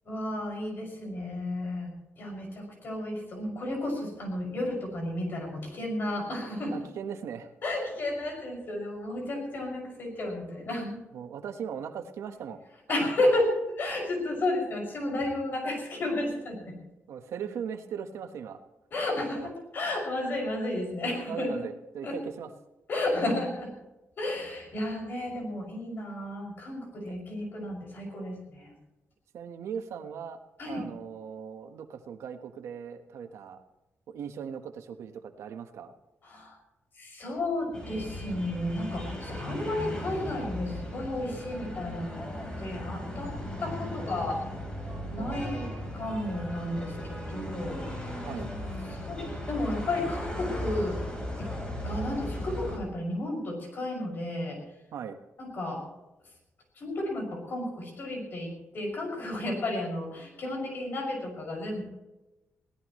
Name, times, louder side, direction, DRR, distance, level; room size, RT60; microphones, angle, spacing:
voice 1, 0.0-1.9 2.2-6.9 7.6-11.0 12.9-13.5 13.8-16.8 18.9-21.6 22.0-22.2 22.9-23.7 24.2-28.7 30.6-30.8 36.2-36.6 37.0-42.2 42.6-44.4 45.1-45.7 45.9-48.2 48.9-51.0 51.4-51.5 51.8-54.6 55.4-55.8 56.8-61.8, left 1 dB, 45° left, 0 dB, 6.3 m, -32 dB
voice 2, 6.7-7.5 11.1-12.6 13.2-13.3 17.1-18.6 19.4-19.5 21.3-22.5 27.1-27.2 29.3-30.4 30.7-33.6 34.1-35.9 45.2-46.1 48.2-48.5 54.9-55.2, right 7 dB, 80° right, 7 dB, 1.3 m, -39 dB
sound 1, 37.7-52.8, equal, 20° left, 4.5 m, -37 dB
22.5 x 16.5 x 3.2 m, 1.0 s
wide cardioid pair, 150°, 5 cm